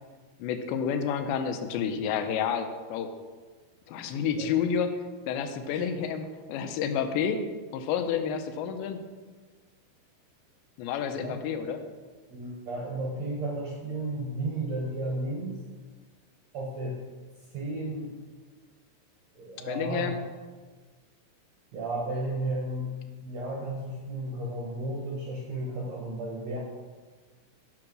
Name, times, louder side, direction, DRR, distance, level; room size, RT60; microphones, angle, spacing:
voice 1, 0.4-3.1 3.9-4.9 5.3-7.4 7.7-9.0 10.8-11.8 19.7-20.2, left 7 dB, 90° left, 8 dB, 3.1 m, -29 dB
voice 2, 12.3-15.6 16.5-17.0 17.5-18.1 19.3-20.1 21.7-22.9 23.2-26.6, right 2 dB, 65° right, -2 dB, 1.8 m, -33 dB
11.5 x 5.8 x 6.1 m, 1.4 s
omnidirectional pair, 4.9 m